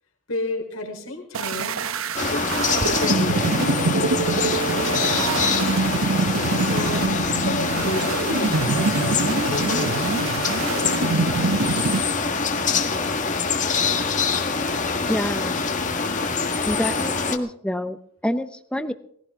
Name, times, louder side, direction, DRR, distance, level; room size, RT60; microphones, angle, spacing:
voice 1, 0.3-1.9 2.3-5.5 6.7-10.2, left 2 dB, 80° left, 2 dB, 3.8 m, -33 dB
sound 1, 1.3-12.0, right 3 dB, 80° right, 0.9 m, -25 dB
sound 2, 2.1-17.4, left 4 dB, 35° left, 1.5 m, -24 dB
voice 2, 15.0-15.6 16.6-18.0 18.2-18.9, equal, 5° left, 11 dB, 0.8 m, -27 dB
20.0 x 16.0 x 3.6 m, 0.66 s
head